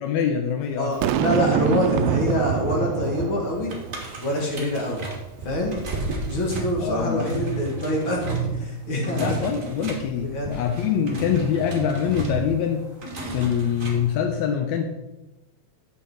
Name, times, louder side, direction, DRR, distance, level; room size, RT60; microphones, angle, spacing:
voice 1, 0.0-0.9 6.8-7.2 9.1-12.8 13.3-14.9, left 8 dB, 75° left, 5 dB, 1.9 m, -24 dB
voice 2, 0.8-3.7 4.2-5.1 5.4-5.7 6.3-9.4 10.2-10.6, left 1 dB, 45° left, -1 dB, 2.1 m, -25 dB
Boom, 1.0-4.3, right 10 dB, 80° right, 1.5 m, -25 dB
sound 1, 3.7-14.1, right 4 dB, 35° right, 1.6 m, -33 dB
9.0 x 7.0 x 4.5 m, 1.0 s
omnidirectional pair, 3.3 m